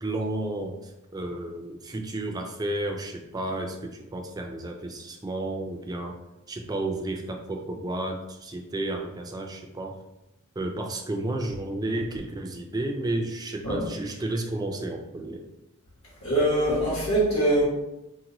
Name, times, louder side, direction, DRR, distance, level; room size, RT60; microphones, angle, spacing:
voice 1, 0.0-6.2 6.5-10.0 10.6-15.5, right 2 dB, 20° right, 3 dB, 0.3 m, -32 dB
voice 2, 16.2-17.6, right 1 dB, 80° left, -7 dB, 1.1 m, -23 dB
2.9 x 2.2 x 3.7 m, 0.93 s
head